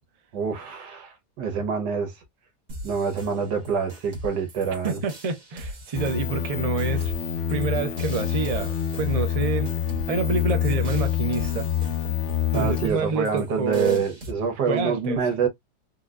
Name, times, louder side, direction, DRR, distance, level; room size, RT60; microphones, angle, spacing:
voice 1, 0.3-2.1 2.8-5.0 12.5-15.5, right 6 dB, 85° right, 1.7 m, -26 dB
sound 1, 2.7-14.3, equal, 70° right, 2.0 m, -41 dB
voice 2, 4.8-7.1 7.5-9.7 10.1-11.7 12.5-14.0 14.7-15.2, right 4 dB, 50° right, 0.4 m, -27 dB
sound 2, 5.9-12.9, left 9 dB, 70° left, 0.7 m, -26 dB
4.7 x 2.3 x 2.4 m
omnidirectional pair, 1.8 m